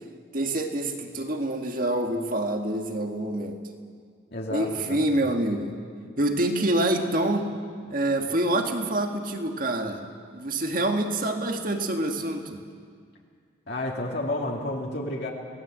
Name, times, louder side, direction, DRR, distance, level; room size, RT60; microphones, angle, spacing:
voice 1, 0.3-3.6 4.5-5.7 6.2-7.5 7.9-10.0 10.3-12.6, right 1 dB, 45° right, 4 dB, 1.9 m, -26 dB
voice 2, 4.3-5.3 13.7-15.3, left 1 dB, 55° left, -2 dB, 2.5 m, -31 dB
27.0 x 18.5 x 7.7 m, 2.1 s
head